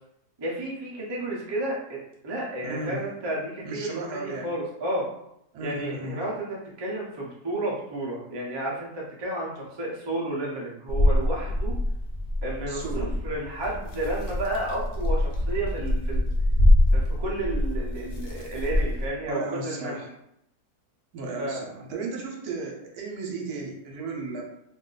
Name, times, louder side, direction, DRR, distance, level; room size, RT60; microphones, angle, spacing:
voice 1, 0.4-5.1 5.6-11.8 12.4-16.3 16.9-20.0 21.4-21.6, right 1 dB, 30° right, -4 dB, 0.5 m, -32 dB
voice 2, 2.6-3.0 3.6-4.5 5.5-6.2 12.6-13.1 19.3-20.1 21.1-24.4, right 3 dB, 75° right, 0 dB, 1.2 m, -34 dB
sound 1, 10.9-19.1, left 1 dB, 60° left, 0.6 m, -24 dB
2.6 x 2.5 x 3.9 m, 0.78 s
omnidirectional pair, 1.7 m